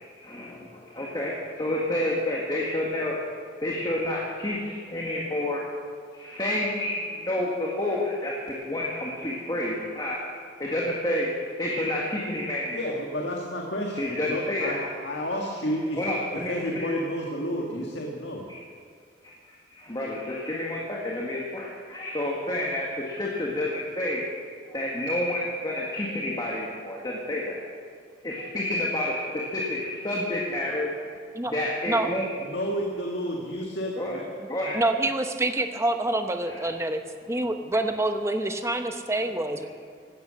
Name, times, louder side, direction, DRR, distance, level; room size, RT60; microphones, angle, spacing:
voice 1, 0.0-3.2 3.6-5.6 6.1-10.2 10.6-11.3 11.6-13.0 13.9-14.8 16.0-17.0 18.5-18.6 19.7-24.2 24.7-27.6 28.2-30.9 31.5-32.3 34.0-34.2 34.5-34.8 36.5-36.6 37.7-37.9, left 1 dB, 25° left, -3 dB, 1.8 m, -29 dB
voice 2, 12.7-18.5 32.4-34.2 34.6-34.7, equal, 70° left, 0 dB, 1.7 m, -31 dB
voice 3, 34.7-37.0 37.3-39.7, right 2 dB, 15° right, 6 dB, 0.9 m, -26 dB
16.5 x 12.5 x 6.4 m, 2.1 s
head